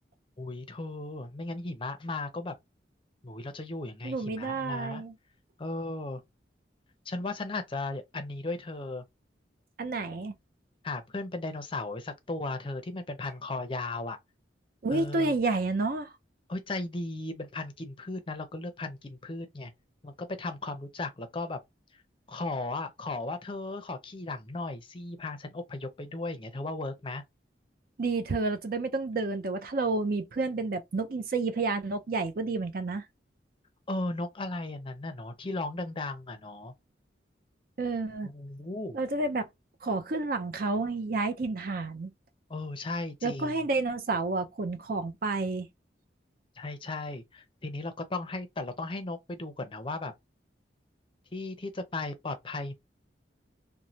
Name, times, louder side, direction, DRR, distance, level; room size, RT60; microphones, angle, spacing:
voice 1, 0.4-2.5 3.2-5.0 5.6-6.2 7.1-9.0 10.8-14.2 14.9-15.3 16.5-19.7 20.0-21.6 22.3-27.2 33.9-36.7 38.2-39.0 42.5-43.6 46.6-50.1 51.3-52.7, left 2 dB, 30° left, 0.5 m, -36 dB
voice 2, 4.0-5.1 9.8-10.3 14.8-16.1 28.0-33.0 37.8-38.3 38.9-39.5 39.8-42.1 43.2-45.7, right 3 dB, 55° right, 0.5 m, -30 dB
3.1 x 2.1 x 2.7 m
head